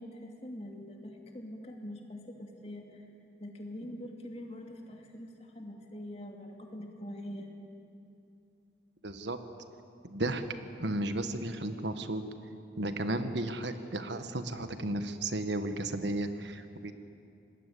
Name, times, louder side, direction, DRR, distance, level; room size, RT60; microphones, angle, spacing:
voice 1, 0.0-3.1 3.4-7.5, left 1 dB, 35° left, 2 dB, 2.7 m, -44 dB
voice 2, 9.0-9.4 10.0-10.4 10.8-12.2 12.8-16.9, right 1 dB, 80° right, 8 dB, 1.5 m, -34 dB
26.5 x 20.5 x 8.4 m, 2.6 s
head